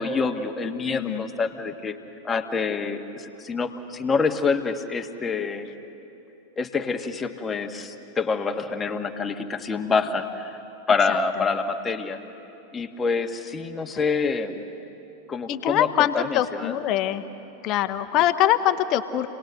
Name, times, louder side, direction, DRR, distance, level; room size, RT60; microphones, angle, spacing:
voice 1, 0.0-2.0 2.2-5.7 6.6-10.6 10.9-12.2 12.7-14.6 15.3-15.9 16.1-16.7, left 4 dB, 15° left, 5 dB, 1.5 m, -26 dB
voice 2, 0.9-1.2 11.1-11.2 15.5-17.2 17.6-19.3, left 12 dB, 40° left, 11 dB, 1.0 m, -23 dB
30.0 x 19.5 x 6.6 m, 3.0 s
figure-of-eight pair, 90°, 0 cm